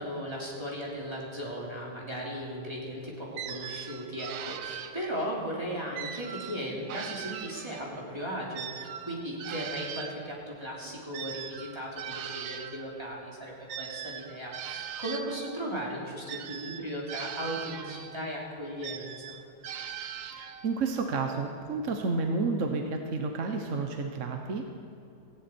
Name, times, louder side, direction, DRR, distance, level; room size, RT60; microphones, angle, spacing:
voice 1, 0.0-19.4, equal, 10° right, -4 dB, 3.0 m, -37 dB
sound 1, 3.4-5.4 5.9-8.0 8.5-12.9 13.7-15.7 16.3-18.3 18.8-20.8, right 9 dB, 65° right, 1.3 m, -40 dB
voice 2, 20.3-24.6, right 4 dB, 45° right, 3 dB, 1.1 m, -31 dB
18.0 x 15.5 x 4.5 m, 2.8 s
omnidirectional pair, 2.3 m